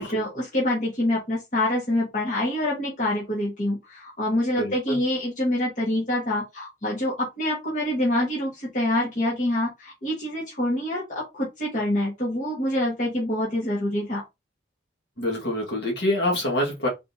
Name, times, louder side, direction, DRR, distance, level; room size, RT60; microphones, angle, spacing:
voice 1, 0.0-14.2, left 1 dB, 45° left, 1.8 m, -26 dB
voice 2, 4.6-5.0 15.2-16.9, left 1 dB, 65° left, 1.8 m, -26 dB
4.4 x 3.8 x 2.8 m
head